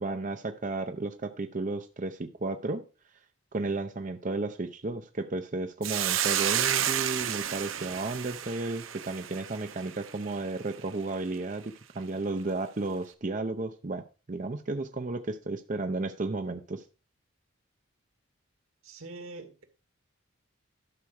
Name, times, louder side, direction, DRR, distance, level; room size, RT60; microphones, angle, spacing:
voice 1, 0.0-2.8 3.5-14.0 14.3-16.8, right 3 dB, 40° right, 0.6 m, -33 dB
Hiss, 5.8-10.3, right 10 dB, 70° right, 0.8 m, -31 dB
voice 2, 18.8-19.6, right 3 dB, 85° right, 1.9 m, -44 dB
12.0 x 4.5 x 6.4 m
head